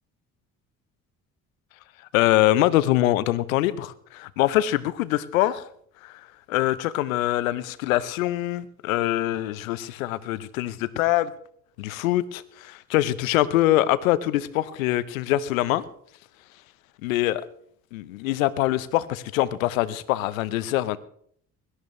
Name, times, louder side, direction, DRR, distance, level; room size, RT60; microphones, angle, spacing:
voice 1, 2.1-5.6 6.0-6.1 6.5-11.3 11.8-15.8 17.0-17.4 17.9-21.0, left 15 dB, 80° left, 17 dB, 0.9 m, -24 dB
23.5 x 13.0 x 3.2 m, 0.66 s
hypercardioid pair, 50°, 40 cm